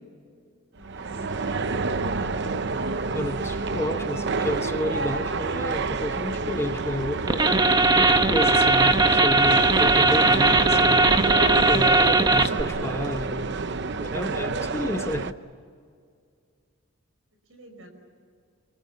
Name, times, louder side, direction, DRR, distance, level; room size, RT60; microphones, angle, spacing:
voice 1, 0.7-2.4 17.5-17.9, equal, 75° right, 5 dB, 5.8 m, -43 dB
sound 1, 0.8-15.3, right 3 dB, 55° right, 0.8 m, -28 dB
voice 2, 3.1-7.5 7.9-11.1 11.6-13.6 14.0-15.4, left 1 dB, 10° left, 8 dB, 1.0 m, -31 dB
sound 2, 7.3-12.6, right 3 dB, 20° right, 1.0 m, -19 dB
27.5 x 24.0 x 7.1 m, 2.2 s
head